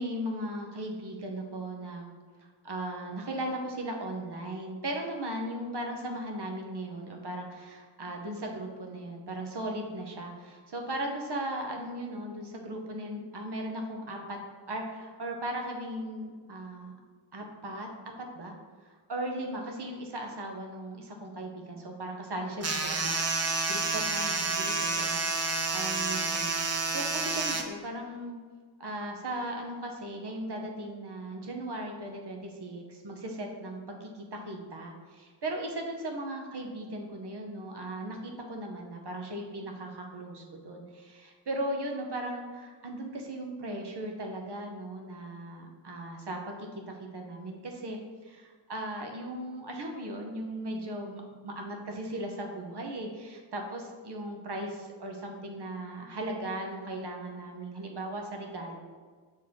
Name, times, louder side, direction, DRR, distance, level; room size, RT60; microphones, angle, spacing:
voice 1, 0.0-2.1 2.4-14.4 14.7-17.0 17.3-17.9 18.2-18.5 18.8-23.2 23.7-28.4 28.8-46.7 47.0-58.8, right 1 dB, 55° right, 2 dB, 1.1 m, -37 dB
sound 1, 22.6-27.6, right 3 dB, 30° right, 0.6 m, -29 dB
6.4 x 4.1 x 3.7 m, 1.5 s
wide cardioid pair, 80°, 49 cm